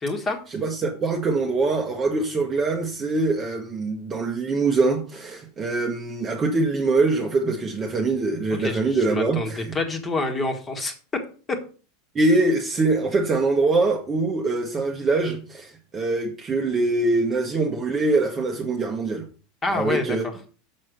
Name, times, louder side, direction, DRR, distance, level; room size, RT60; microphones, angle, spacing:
voice 1, 0.0-0.4 8.6-11.2 11.5-11.6 19.6-20.2, left 2 dB, 15° left, 1.7 m, -27 dB
voice 2, 0.5-9.8 12.1-19.3 19.7-20.3, right 3 dB, 20° right, 1.1 m, -23 dB
6.4 x 6.2 x 6.5 m
supercardioid pair, 150°, 0 cm